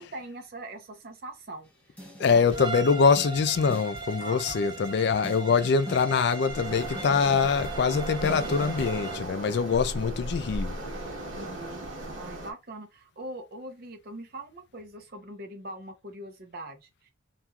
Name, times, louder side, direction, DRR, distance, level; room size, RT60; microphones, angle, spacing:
voice 1, 0.0-1.7 2.2-2.5 4.2-5.0 11.3-11.8 12.1-17.1, right 1 dB, 50° right, 0.7 m, -42 dB
sound 1, 2.0-2.8 3.2-9.0, equal, 10° left, 0.8 m, -43 dB
voice 2, 2.2-10.8, left 5 dB, 55° left, 0.3 m, -24 dB
Bowed string instrument, 2.5-9.3, right 6 dB, 20° right, 0.3 m, -38 dB
Waves surf, 6.4-12.5, right 1 dB, 80° right, 1.1 m, -36 dB
3.0 x 2.5 x 2.2 m
head